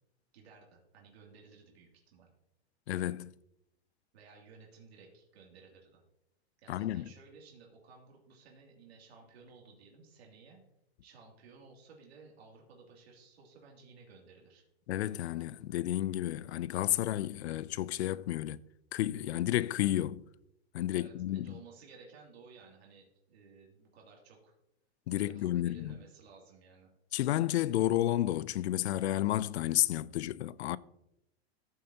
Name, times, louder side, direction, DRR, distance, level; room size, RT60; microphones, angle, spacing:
voice 1, 0.3-2.3 4.1-6.0 6.6-10.6 11.0-14.6 20.9-24.5 25.1-26.9, right 4 dB, 75° right, 2.8 m, -56 dB
voice 2, 2.9-3.3 6.7-7.1 14.9-18.6 18.9-20.2 20.7-21.5 25.1-26.0 27.1-30.8, left 13 dB, 85° left, 0.5 m, -31 dB
14.0 x 7.4 x 2.9 m
supercardioid pair, 160°, 32 cm